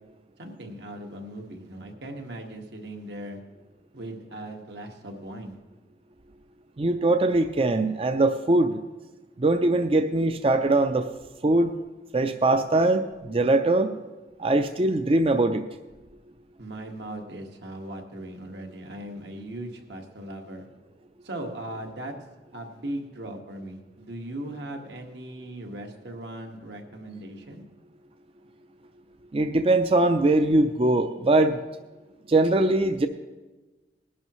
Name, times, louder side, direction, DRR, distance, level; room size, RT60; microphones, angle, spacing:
voice 1, 0.4-3.4 3.9-5.6 16.6-20.7 21.2-22.1 22.5-27.6, right 1 dB, 75° right, 3 dB, 1.7 m, -38 dB
voice 2, 6.8-8.8 9.4-11.1 11.4-11.7 12.1-14.0 14.4-15.7 29.3-31.6 32.3-33.1, right 2 dB, 30° right, 8 dB, 0.4 m, -22 dB
20.0 x 11.0 x 3.1 m, 1.2 s
head